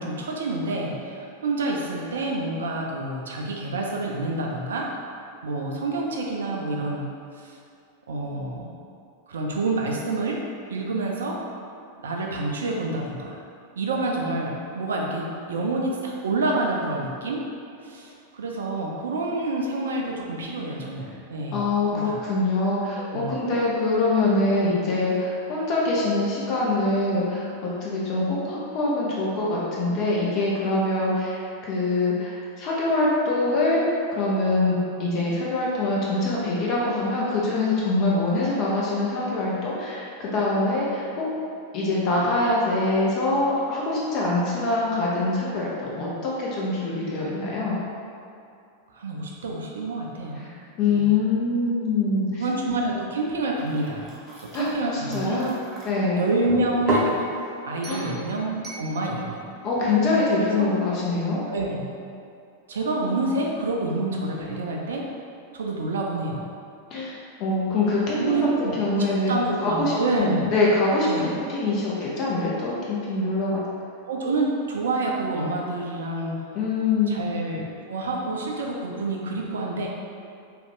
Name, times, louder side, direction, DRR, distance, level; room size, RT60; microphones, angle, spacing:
voice 1, 0.0-4.9 5.4-7.1 7.3-7.5 8.1-8.8 9.3-10.4 10.7-11.4 12.0-13.4 13.7-17.4 17.8-22.2 23.0-23.3 48.9-50.4 50.9-51.2 52.3-54.1 54.4-55.4 56.2-57.3 57.7-59.5 60.4-60.7 61.5-61.8 62.7-65.1 65.5-66.4 68.1-70.5 71.0-71.3 74.1-76.4 77.1-77.6 77.9-79.9, right 2 dB, 65° right, -1 dB, 0.5 m, -28 dB
voice 2, 21.5-41.2 41.7-47.8 50.8-52.4 54.5-54.7 55.1-55.5 55.8-56.2 57.9-58.1 59.6-61.4 66.9-67.1 67.4-69.4 69.6-73.6 76.5-77.2, left 2 dB, 40° left, -5 dB, 0.6 m, -24 dB
sound 1, 53.6-55.9 56.5-57.2 57.8-58.2 58.6-58.9, right 1 dB, 20° right, 0.7 m, -31 dB
3.2 x 2.3 x 3.5 m, 2.5 s
figure-of-eight pair, 90°, 0 cm